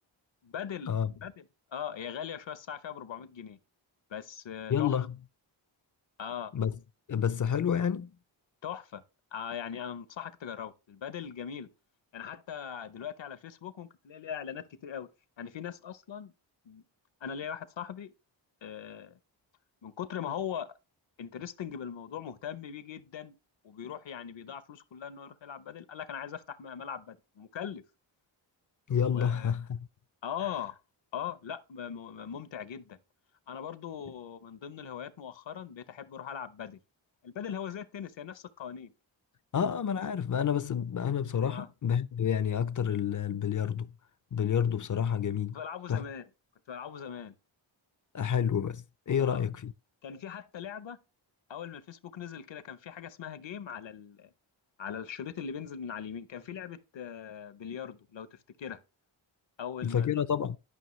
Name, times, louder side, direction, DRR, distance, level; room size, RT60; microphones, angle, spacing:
voice 1, 0.4-0.9 1.2-3.6 4.1-5.0 6.2-6.5 8.6-9.0 9.3-11.7 12.1-15.1 15.4-16.3 16.6-16.8 17.2-18.1 18.6-19.1 19.8-20.8 21.2-23.4 23.6-27.8 29.0-29.5 30.2-30.8 31.1-33.0 33.5-36.8 37.2-38.9 41.5-41.7 45.5-46.3 46.7-47.4 49.2-49.4 50.0-51.0 51.5-54.3 54.8-58.8 59.6-60.2, left 8 dB, 65° left, 0.9 m, -40 dB
voice 2, 4.7-5.1 6.5-6.8 7.1-8.1 28.9-29.9 39.5-43.9 44.3-45.6 45.9-46.0 48.1-49.7 59.8-60.6, left 8 dB, 40° left, 0.5 m, -29 dB
12.0 x 5.5 x 3.1 m
cardioid pair, 50°, 48 cm